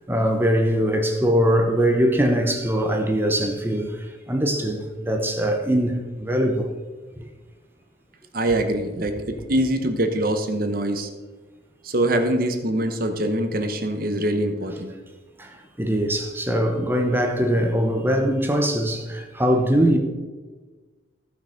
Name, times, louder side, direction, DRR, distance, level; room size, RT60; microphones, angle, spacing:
voice 1, 0.1-6.7 15.4-20.0, equal, 10° right, 0.8 m, -22 dB
voice 2, 8.3-11.1 11.8-14.9, right 1 dB, 50° right, 1.0 m, -24 dB
14.5 x 5.8 x 5.1 m
head